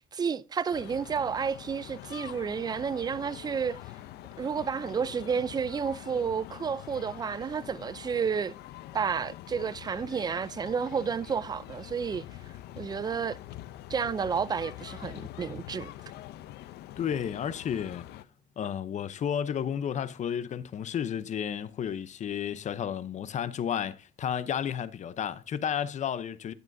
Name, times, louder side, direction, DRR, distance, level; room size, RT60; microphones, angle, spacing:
voice 1, 0.0-3.8 4.4-8.5 8.9-12.2 12.8-13.4 13.9-15.9, right 6 dB, 25° right, 0.4 m, -31 dB
sound 1, 0.7-18.3, left 14 dB, 75° left, 0.6 m, -45 dB
voice 2, 17.0-18.0 18.6-26.5, left 8 dB, 45° left, 0.7 m, -32 dB
11.0 x 8.9 x 2.7 m
cardioid pair, 110°, 17 cm